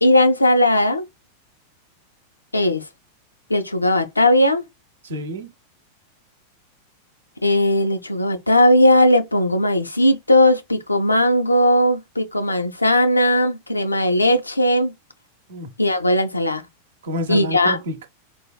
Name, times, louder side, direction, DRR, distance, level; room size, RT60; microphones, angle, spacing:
voice 1, 0.0-1.0 2.5-2.8 3.5-4.6 7.4-14.9 15.8-16.6 17.3-17.8, left 1 dB, 85° left, 0.4 m, -17 dB
voice 2, 5.0-5.5 15.5-15.7 17.0-18.1, equal, 65° right, 0.6 m, -28 dB
3.2 x 2.2 x 2.2 m
figure-of-eight pair, 90°, 0 cm